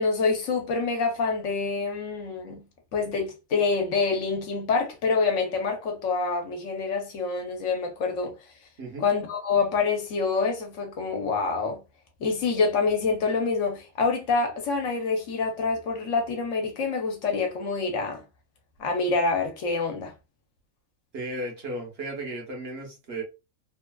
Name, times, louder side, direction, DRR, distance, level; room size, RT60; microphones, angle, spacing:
voice 1, 0.0-2.6 2.9-8.3 9.0-11.8 12.2-18.2 18.8-20.1, left 4 dB, 70° left, 1.2 m, -26 dB
voice 2, 21.1-23.2, right 1 dB, 55° right, 1.1 m, -35 dB
3.2 x 2.4 x 2.3 m
omnidirectional pair, 1.4 m